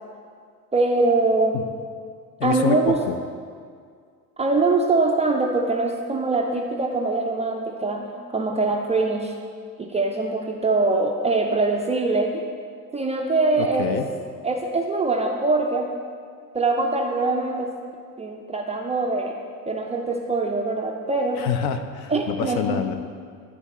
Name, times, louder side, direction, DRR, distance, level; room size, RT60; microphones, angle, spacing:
voice 1, 0.7-1.6 2.4-3.0 4.4-9.3 9.8-12.4 12.9-13.9 14.4-15.9 16.5-17.7 18.2-19.3 19.7-21.4 22.1-22.8, right 3 dB, 15° right, 1 dB, 0.4 m, -23 dB
voice 2, 2.4-3.2 13.6-14.1 21.4-22.9, left 8 dB, 50° left, 8 dB, 0.7 m, -26 dB
11.0 x 3.7 x 4.2 m, 2.1 s
hypercardioid pair, 65°, 49 cm